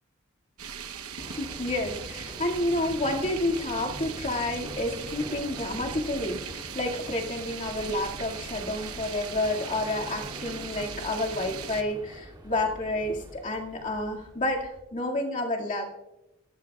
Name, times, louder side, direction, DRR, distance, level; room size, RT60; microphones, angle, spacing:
sound 1, 0.6-11.8, right 7 dB, 90° right, 1.0 m, -39 dB
bologna asinelli tower collapse, 1.2-14.8, right 1 dB, 20° right, 2.8 m, -44 dB
voice 1, 1.3-15.8, left 1 dB, 35° left, -1 dB, 2.3 m, -30 dB
23.0 x 17.5 x 2.4 m, 0.98 s
head